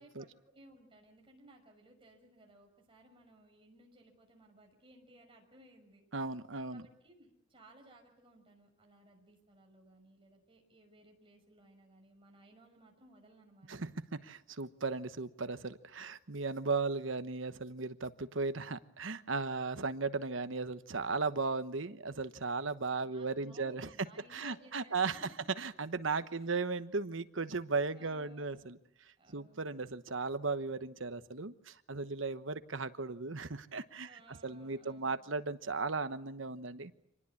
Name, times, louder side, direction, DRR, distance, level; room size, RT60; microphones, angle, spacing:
voice 1, 0.0-6.1 6.7-13.7 23.0-25.5 26.3-26.5 27.9-28.9 29.2-30.0 34.0-35.3, right 1 dB, 25° right, 1 dB, 6.1 m, -61 dB
voice 2, 6.1-6.8 13.7-23.9 24.3-25.2 25.6-28.8 29.3-37.0, right 4 dB, 65° right, 12 dB, 1.1 m, -36 dB
26.0 x 19.5 x 8.6 m, 0.83 s
head